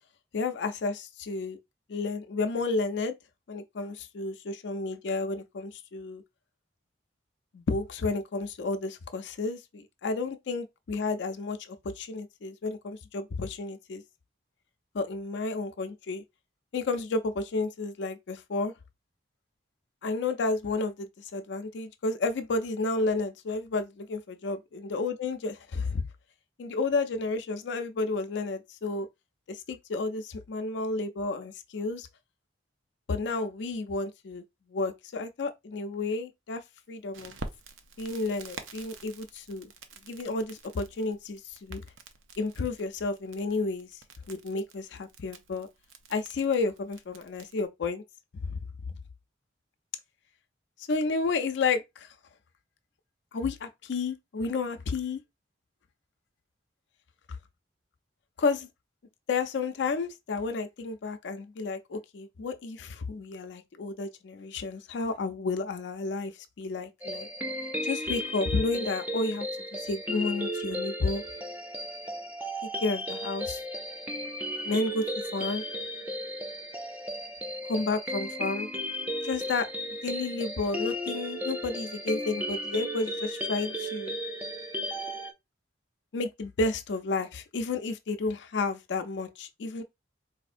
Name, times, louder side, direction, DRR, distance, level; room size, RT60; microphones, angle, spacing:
voice 1, 0.3-1.6 1.9-3.2 3.5-6.2 7.5-14.0 14.9-16.2 16.7-18.7 20.0-24.6 24.9-26.0 26.6-29.1 29.5-32.1 33.1-34.4 34.7-36.6 36.9-37.4 38.0-39.7 40.1-41.8 42.4-43.9 44.3-45.7 46.1-48.0 48.4-48.6 50.9-52.1 53.3-55.2 58.4-58.7 59.3-66.3 66.6-67.3 67.8-69.5 69.7-71.2 72.8-73.6 74.6-75.0 75.3-75.6 77.7-78.7 79.2-79.7 80.0-84.1 86.1-89.8, left 3 dB, 60° left, 0.4 m, -31 dB
Crackle, 37.1-47.7, right 4 dB, 80° right, 0.5 m, -48 dB
sound 1, 67.0-85.3, equal, 10° right, 0.4 m, -35 dB
4.2 x 2.6 x 2.5 m
head